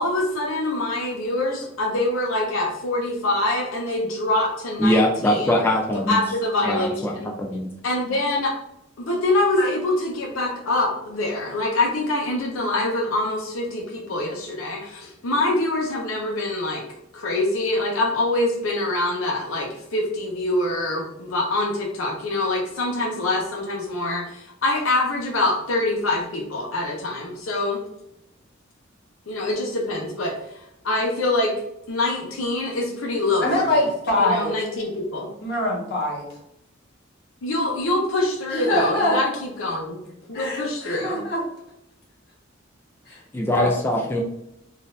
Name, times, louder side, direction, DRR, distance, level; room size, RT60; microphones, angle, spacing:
voice 1, 0.0-5.6 5.9-7.3 7.8-8.5 9.0-16.9 17.1-27.8 29.3-31.5 31.9-33.8 34.2-35.3 37.4-39.3 39.6-40.0 40.3-41.2, left 2 dB, 80° left, 1 dB, 0.7 m, -25 dB
voice 2, 4.8-6.2 6.6-7.7 43.3-44.2, left 1 dB, 10° left, 0 dB, 0.3 m, -22 dB
voice 3, 33.4-34.6 35.4-36.3 38.5-39.2 40.3-41.4 43.1-43.8, left 1 dB, 55° left, -3 dB, 1.4 m, -24 dB
3.8 x 2.6 x 2.6 m, 0.83 s
head